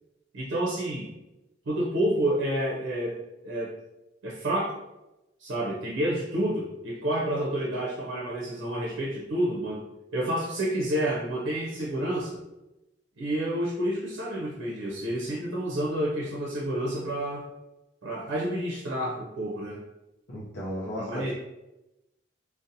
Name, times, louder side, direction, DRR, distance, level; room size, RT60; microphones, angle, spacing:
voice 1, 0.3-1.1 1.7-3.7 4.2-4.8 5.4-9.9 10.1-12.4 13.2-17.5 18.0-19.8 21.0-21.3, right 1 dB, 80° right, -4 dB, 0.5 m, -29 dB
voice 2, 20.3-21.3, equal, 60° left, -6 dB, 0.5 m, -34 dB
2.7 x 2.0 x 2.5 m, 0.95 s
head